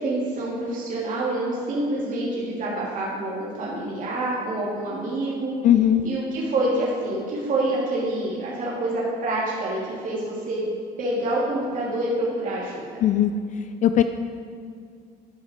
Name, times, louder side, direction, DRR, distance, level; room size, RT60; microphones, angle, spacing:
voice 1, 0.0-5.5 6.0-10.7 11.0-12.9, right 1 dB, 50° right, -6 dB, 2.7 m, -27 dB
voice 2, 5.6-6.1 13.0-13.3 13.8-14.0, left 11 dB, 50° left, 9 dB, 0.4 m, -18 dB
12.5 x 5.8 x 4.4 m, 2.2 s
cardioid pair, 110°, 17 cm